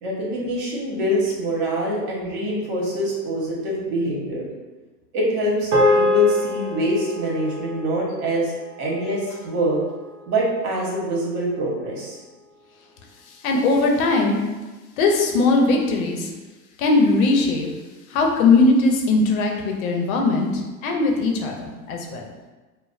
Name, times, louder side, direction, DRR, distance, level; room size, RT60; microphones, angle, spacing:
voice 1, 0.0-4.5 5.1-8.5 8.8-9.8 10.3-12.2, equal, 65° right, -3 dB, 1.5 m, -24 dB
sound 1, 5.7-10.2, left 1 dB, 40° right, 1.0 m, -25 dB
voice 2, 13.4-14.4 15.0-16.3 16.8-17.7 18.1-22.3, left 3 dB, 55° left, 1 dB, 0.8 m, -19 dB
5.0 x 2.2 x 2.7 m, 1.2 s
hypercardioid pair, 110°, 50 cm